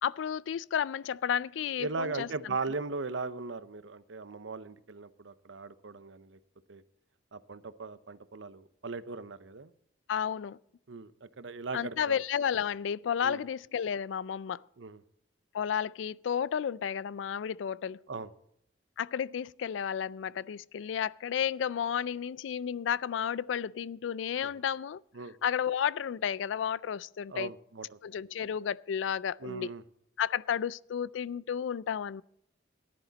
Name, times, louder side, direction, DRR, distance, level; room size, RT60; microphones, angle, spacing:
voice 1, 0.0-2.6 10.1-10.6 11.7-14.6 15.5-18.0 19.0-25.0 25.4-27.5 28.0-29.7 30.2-32.2, left 8 dB, 85° left, 0.3 m, -32 dB
voice 2, 1.8-6.4 6.7-6.8 7.3-9.7 10.9-12.2 13.2-13.4 14.8-15.0 18.1-18.3 24.4-24.5 25.1-25.3 27.3-28.0 29.4-29.8, right 4 dB, 90° right, 0.7 m, -38 dB
14.5 x 11.0 x 4.0 m
head